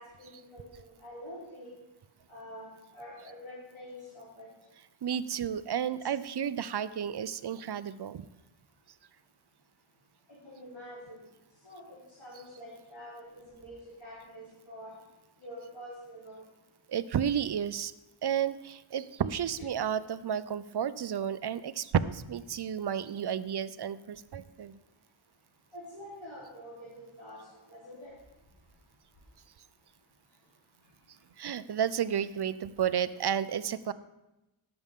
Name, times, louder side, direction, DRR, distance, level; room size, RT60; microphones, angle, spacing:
voice 1, 0.0-1.7 2.3-2.7 2.9-4.5 10.3-11.2 11.6-14.9 15.4-16.4 25.7-28.1, equal, 65° left, -8 dB, 3.7 m, -46 dB
voice 2, 5.0-8.2 16.9-17.9 18.2-24.8 31.4-33.9, right 8 dB, 55° right, 15 dB, 0.6 m, -32 dB
17.5 x 7.0 x 3.6 m, 0.96 s
wide cardioid pair, 60°, 50 cm